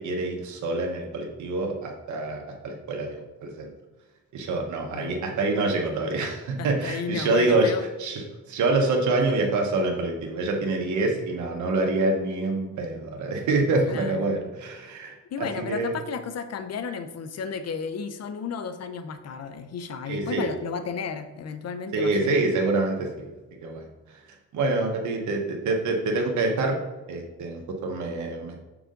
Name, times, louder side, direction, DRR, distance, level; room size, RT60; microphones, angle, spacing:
voice 1, 0.0-3.7 4.3-15.9 20.1-20.5 21.9-23.3 23.6-24.2 24.5-26.7 27.1-28.6, right 2 dB, 70° right, 1 dB, 1.2 m, -26 dB
voice 2, 6.6-7.8 13.9-14.3 15.3-22.4, left 6 dB, 55° left, 10 dB, 0.7 m, -33 dB
6.5 x 4.8 x 3.8 m, 1.2 s
cardioid pair, 90°, 30 cm